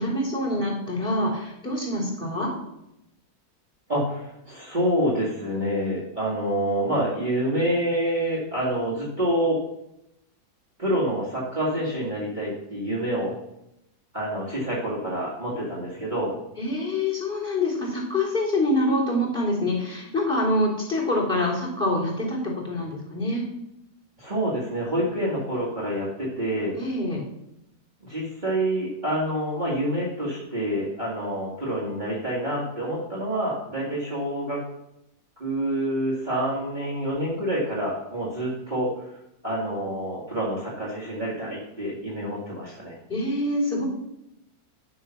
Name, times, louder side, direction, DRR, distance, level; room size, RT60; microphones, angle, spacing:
voice 1, 0.0-2.5 16.6-22.4 22.6-23.4 26.8-27.2 43.1-43.9, left 1 dB, 5° left, -4 dB, 3.3 m, -25 dB
voice 2, 3.9-9.6 10.8-13.3 14.1-16.3 24.2-26.7 28.0-34.6 35.4-38.9 39.4-43.0, right 1 dB, 30° right, -8 dB, 2.2 m, -27 dB
11.5 x 3.9 x 5.9 m, 0.84 s
omnidirectional pair, 1.7 m